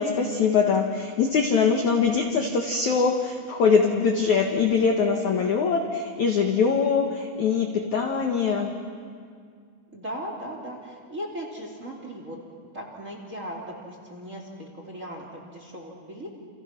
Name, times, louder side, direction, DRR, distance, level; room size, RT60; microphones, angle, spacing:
voice 1, 0.0-8.7, left 5 dB, 65° left, 3 dB, 1.9 m, -23 dB
voice 2, 9.9-12.4 12.7-16.3, equal, 20° right, 0 dB, 2.6 m, -37 dB
29.5 x 29.0 x 6.0 m, 2.1 s
omnidirectional pair, 5.5 m